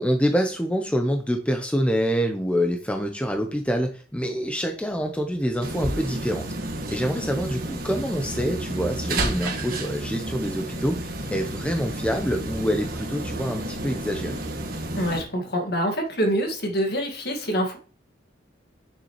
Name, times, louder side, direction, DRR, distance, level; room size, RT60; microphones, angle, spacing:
voice 1, 0.0-6.4 6.9-14.4, equal, 5° left, 4 dB, 0.7 m, -26 dB
sound 1, 5.6-15.2, right 1 dB, 50° right, 1.5 m, -31 dB
voice 2, 15.0-17.8, equal, 55° left, 3 dB, 2.0 m, -25 dB
9.6 x 6.7 x 3.1 m, 0.39 s
head